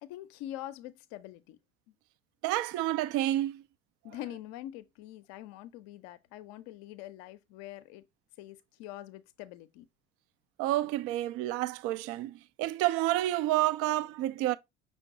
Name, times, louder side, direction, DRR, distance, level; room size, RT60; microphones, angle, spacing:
voice 1, 0.0-1.6 4.0-8.1 8.4-9.9, left 13 dB, 60° left, 0.6 m, -44 dB
voice 2, 2.4-3.6 10.6-14.6, right 15 dB, 50° right, 0.4 m, -29 dB
5.8 x 2.4 x 3.6 m
figure-of-eight pair, 65°, 31 cm